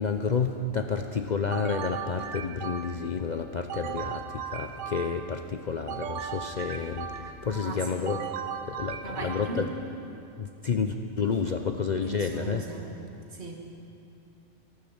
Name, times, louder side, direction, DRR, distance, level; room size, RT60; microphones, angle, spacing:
voice 1, 0.0-8.3 8.7-9.7 10.4-12.6, left 5 dB, 50° left, 6 dB, 0.6 m, -30 dB
sound 1, 1.5-3.2 3.7-5.4 5.9-7.5 8.1-9.8, right 8 dB, 90° right, 1.1 m, -37 dB
voice 2, 7.5-8.1 9.0-9.7 12.0-12.9 13.3-13.6, right 3 dB, 60° right, 1 dB, 2.0 m, -38 dB
13.5 x 12.5 x 7.2 m, 2.7 s
omnidirectional pair, 1.3 m